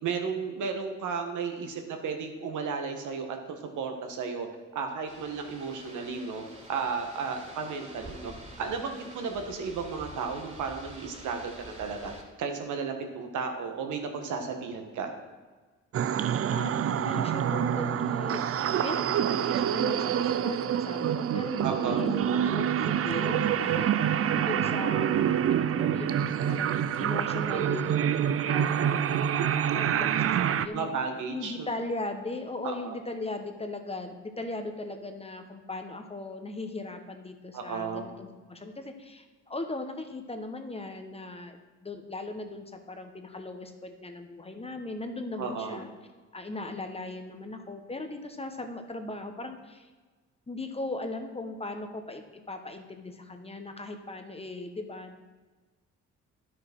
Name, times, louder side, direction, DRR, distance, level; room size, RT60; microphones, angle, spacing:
voice 1, 0.0-4.5 4.7-6.4 6.7-8.3 8.6-15.1 21.6-22.1 24.3-24.8 30.7-31.7 32.6-33.0 37.5-38.0 45.4-45.8, right 5 dB, 80° right, 4 dB, 1.6 m, -34 dB
sound 1, 5.1-12.2, right 1 dB, 25° right, 2.5 m, -47 dB
sound 2, 15.9-30.7, right 9 dB, 50° right, 0.5 m, -27 dB
voice 2, 16.5-18.4 18.7-30.9 31.3-45.9 46.3-49.9 50.5-55.3, left 2 dB, 20° left, 6 dB, 1.2 m, -38 dB
10.5 x 6.5 x 6.1 m, 1.3 s
cardioid pair, 90°, 30 cm